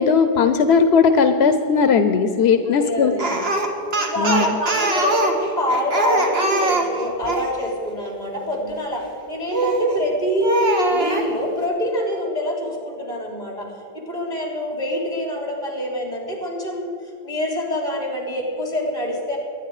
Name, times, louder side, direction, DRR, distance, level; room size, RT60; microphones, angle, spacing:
voice 1, 0.0-3.1 4.2-4.5, left 5 dB, 90° left, 9 dB, 1.0 m, -17 dB
voice 2, 2.7-3.4 3.9-19.4, equal, 45° left, -1 dB, 3.9 m, -26 dB
Speech, 3.2-7.5 9.5-9.9 10.4-11.3, right 1 dB, 75° right, 1.9 m, -21 dB
23.0 x 9.7 x 4.8 m, 2.8 s
omnidirectional pair, 1.0 m